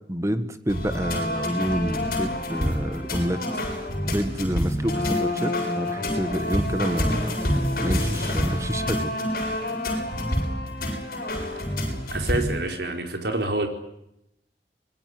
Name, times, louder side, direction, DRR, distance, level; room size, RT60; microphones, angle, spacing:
voice 1, 0.1-3.4 4.0-7.4 7.8-9.1, equal, 15° right, 10 dB, 1.7 m, -28 dB
sound 1, 0.7-12.6, left 1 dB, 55° left, 7.5 m, -27 dB
voice 2, 12.1-13.7, right 2 dB, 75° right, 5 dB, 4.6 m, -27 dB
24.5 x 22.0 x 9.6 m, 0.81 s
head